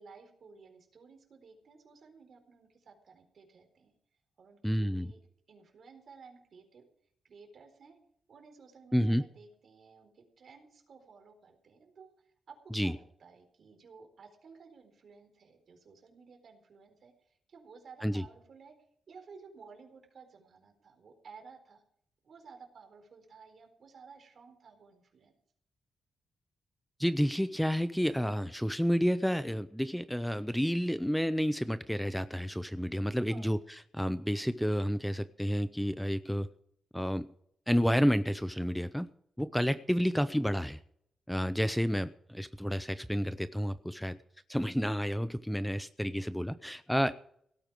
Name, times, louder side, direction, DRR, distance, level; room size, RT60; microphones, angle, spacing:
voice 1, 0.0-3.9 4.4-5.2 5.5-6.8 7.2-8.0 8.3-18.7 19.1-21.8 22.2-25.3 33.2-33.5, right 5 dB, 60° right, 5 dB, 4.1 m, -55 dB
voice 2, 4.6-5.1 8.9-9.2 12.7-12.9 18.0-18.2 27.0-33.6 33.9-36.5 36.9-37.3 37.7-39.1 39.4-40.8 41.3-44.2 44.5-47.2, equal, ahead, 13 dB, 0.6 m, -30 dB
17.5 x 8.9 x 6.2 m, 0.68 s
cardioid pair, 115°, 0 cm